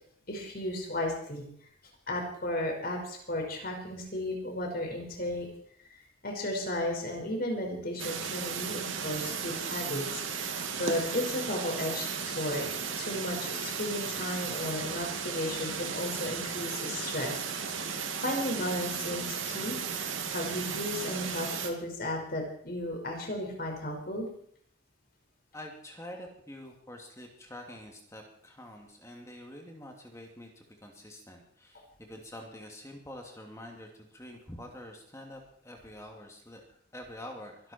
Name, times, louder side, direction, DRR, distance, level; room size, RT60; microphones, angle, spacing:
voice 1, 0.3-1.4 2.1-5.5 5.9-24.3, left 1 dB, 45° left, 1 dB, 5.2 m, -34 dB
sound 1, 8.0-21.7, right 6 dB, 75° right, 2.3 m, -35 dB
voice 2, 25.5-37.7, left 1 dB, 15° left, 2 dB, 2.6 m, -46 dB
23.5 x 12.5 x 4.5 m, 0.64 s
head